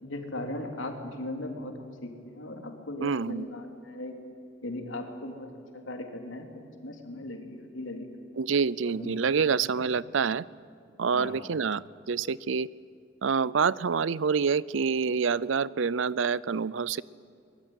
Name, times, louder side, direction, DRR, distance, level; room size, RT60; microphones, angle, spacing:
voice 1, 0.0-4.2 4.6-5.5 5.7-6.5 6.8-8.1 8.8-9.2 11.1-11.4, left 1 dB, 80° left, 4 dB, 3.3 m, -38 dB
voice 2, 3.0-3.5 8.4-10.4 11.0-12.7 13.2-17.0, right 5 dB, 75° right, 21 dB, 0.5 m, -27 dB
23.0 x 21.5 x 9.3 m, 2.4 s
head